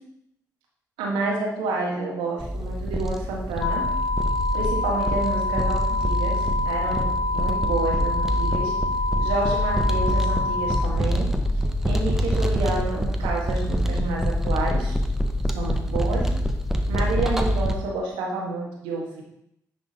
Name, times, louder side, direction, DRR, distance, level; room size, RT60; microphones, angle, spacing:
voice 1, 1.0-3.8 4.5-8.7 9.2-11.3 11.9-15.0 15.5-16.3 16.9-19.2, right 3 dB, 85° right, -1 dB, 1.5 m, -29 dB
sound 1, 2.4-17.7, equal, 5° right, 0.9 m, -25 dB
sound 2, 3.6-10.8, left 2 dB, 45° left, 2.5 m, -27 dB
10.0 x 3.6 x 4.1 m, 0.79 s
hypercardioid pair, 45°, 8 cm